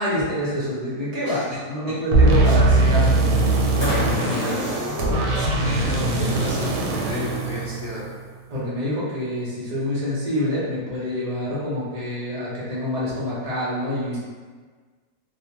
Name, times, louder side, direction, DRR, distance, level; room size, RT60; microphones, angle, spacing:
voice 1, 0.0-3.3 3.7-4.4 8.5-14.2, equal, 65° right, -8 dB, 0.3 m, -26 dB
voice 2, 1.2-1.6 1.9-2.0 2.7-3.0 4.2-4.9 5.3-8.1, left 1 dB, 80° left, -9 dB, 0.5 m, -34 dB
sound 1, 2.1-8.3, right 2 dB, 85° right, 1.2 m, -20 dB
sound 2, 2.8-3.2 3.8-7.0 8.0-8.1, equal, 30° left, 0.5 m, -35 dB
2.7 x 2.1 x 2.9 m, 1.5 s
omnidirectional pair, 1.8 m